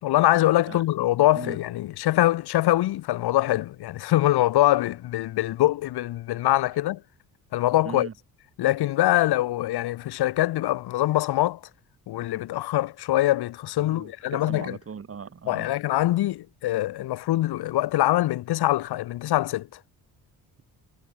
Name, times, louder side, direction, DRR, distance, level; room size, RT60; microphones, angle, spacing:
voice 1, 0.0-7.0 7.5-8.1 8.6-11.6 12.1-14.8 15.5-19.7, left 15 dB, 85° left, 4.8 m, -23 dB
voice 2, 13.8-15.7, right 6 dB, 35° right, 3.9 m, -38 dB
cardioid pair, 105°, 38 cm